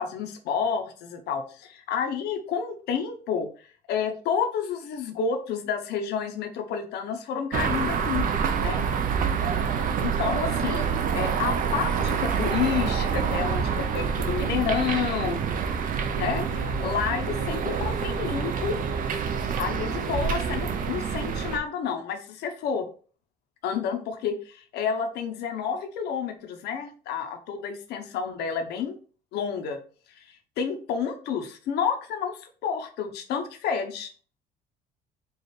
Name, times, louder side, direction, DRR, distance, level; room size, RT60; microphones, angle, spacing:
voice 1, 0.0-8.3 8.6-8.8 10.0-15.4 16.1-18.8 19.6-22.9 23.6-29.0 29.3-29.8 30.2-34.1, left 7 dB, 75° left, 7 dB, 0.8 m, -30 dB
sound 1, 7.5-21.6, right 6 dB, 55° right, 0.6 m, -27 dB
4.6 x 2.4 x 3.2 m, 0.40 s
cardioid pair, 110°, 17 cm